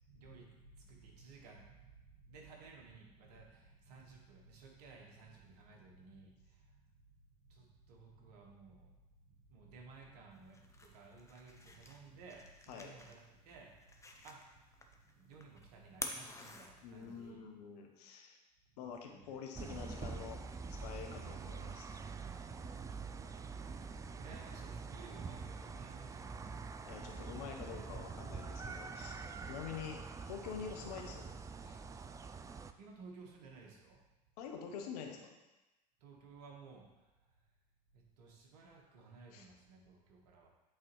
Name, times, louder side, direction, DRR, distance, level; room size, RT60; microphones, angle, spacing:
voice 1, 0.0-6.9 7.4-9.0 9.2-14.5 14.9-17.4 18.8-19.3 22.7-23.8 24.1-26.9 32.8-34.0 36.0-37.3 37.9-40.5, right 4 dB, 70° right, 0 dB, 1.5 m, -57 dB
sound 1, 10.3-17.3, left 3 dB, 15° left, 0.8 m, -50 dB
voice 2, 16.8-18.4 18.8-21.9 26.8-29.2 29.5-31.8 34.4-35.4 39.3-39.5, left 7 dB, 70° left, 3 dB, 1.0 m, -47 dB
sound 2, 19.5-32.7, right 4 dB, 15° right, 0.3 m, -45 dB
8.6 x 4.2 x 3.1 m, 1.0 s
hypercardioid pair, 75°, 21 cm